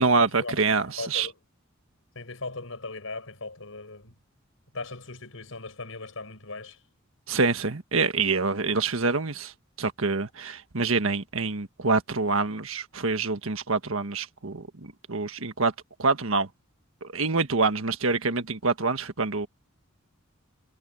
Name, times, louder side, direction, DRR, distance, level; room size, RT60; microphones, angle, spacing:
voice 1, 0.0-1.3 7.3-9.5 9.8-15.7 16.0-16.5 17.0-19.5, right 4 dB, 80° right, 1.5 m, -26 dB
voice 2, 1.0-1.4 2.1-4.2 4.7-6.8, left 3 dB, 75° left, 5.8 m, -38 dB
head